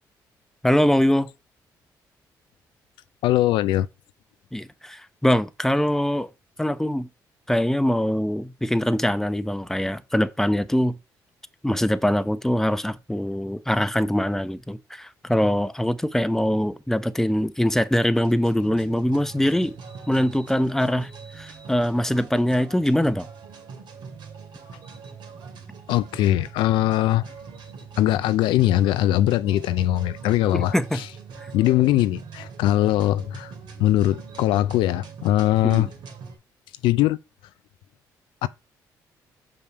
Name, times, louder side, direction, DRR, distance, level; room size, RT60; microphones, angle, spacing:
voice 1, 0.6-1.3 4.5-6.3 6.6-7.1 7.5-10.9 11.6-19.7 20.1-21.1 21.4-23.3 30.5-31.0 35.6-35.9, equal, 5° left, 0.8 m, -23 dB
voice 2, 3.2-3.9 25.9-27.2 28.0-31.1 31.5-33.5 33.8-35.9 36.8-37.2 38.4-38.5, left 14 dB, 85° left, 0.4 m, -21 dB
sound 1, 18.1-36.4, right 5 dB, 70° right, 2.5 m, -42 dB
6.6 x 5.5 x 4.6 m
supercardioid pair, 65°, 8 cm